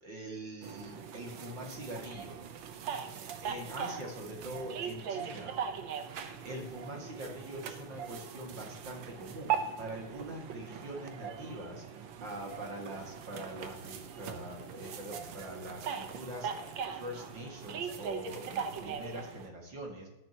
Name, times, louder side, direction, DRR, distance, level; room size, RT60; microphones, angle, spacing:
voice 1, 0.0-2.4 3.4-5.6 6.4-20.1, right 1 dB, 40° right, 0 dB, 2.7 m, -43 dB
sound 1, 0.6-19.5, right 7 dB, 85° right, 1.0 m, -40 dB
13.0 x 10.5 x 3.0 m, 0.94 s
omnidirectional pair, 3.4 m